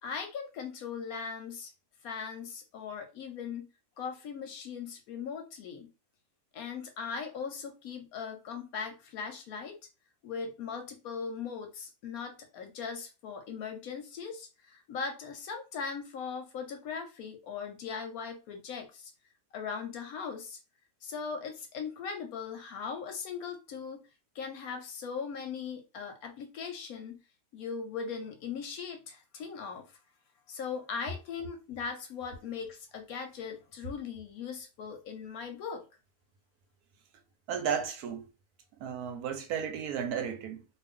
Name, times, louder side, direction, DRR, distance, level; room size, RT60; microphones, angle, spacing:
voice 1, 0.0-1.7 2.0-3.7 4.0-5.9 6.5-9.7 10.2-19.1 19.5-20.6 21.0-24.0 24.3-27.2 27.5-29.9 30.5-35.8, left 6 dB, 70° left, 1.0 m, -39 dB
voice 2, 37.5-38.3 38.8-40.7, right 7 dB, 75° right, 1.0 m, -33 dB
2.5 x 2.4 x 3.5 m
omnidirectional pair, 1.8 m